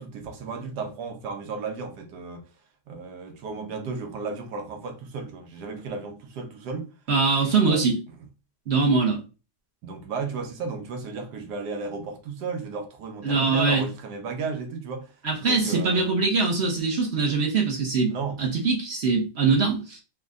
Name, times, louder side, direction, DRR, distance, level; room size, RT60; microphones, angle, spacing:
voice 1, 0.0-2.4 2.9-6.9 7.4-7.8 9.8-15.1 15.4-16.1 18.1-18.4, right 4 dB, 80° right, 1.3 m, -34 dB
voice 2, 7.1-8.0 8.7-9.2 13.2-13.9 15.2-20.0, right 4 dB, 55° right, 0.8 m, -23 dB
3.4 x 2.1 x 3.6 m
omnidirectional pair, 1.8 m